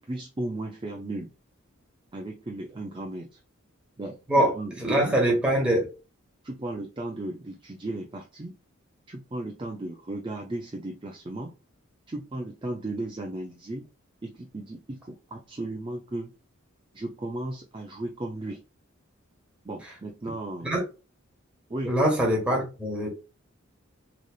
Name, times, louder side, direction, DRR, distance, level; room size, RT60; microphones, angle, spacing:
voice 1, 0.0-1.3 2.1-3.4 4.0-4.2 4.5-5.2 6.4-8.5 9.1-11.5 12.1-13.9 14.2-16.3 16.9-18.6 19.6-20.7 21.7-21.9, right 2 dB, 25° right, 0.5 m, -35 dB
voice 2, 4.8-5.9 20.6-20.8 21.9-23.1, right 1 dB, 5° right, 1.4 m, -23 dB
3.9 x 3.2 x 2.3 m
head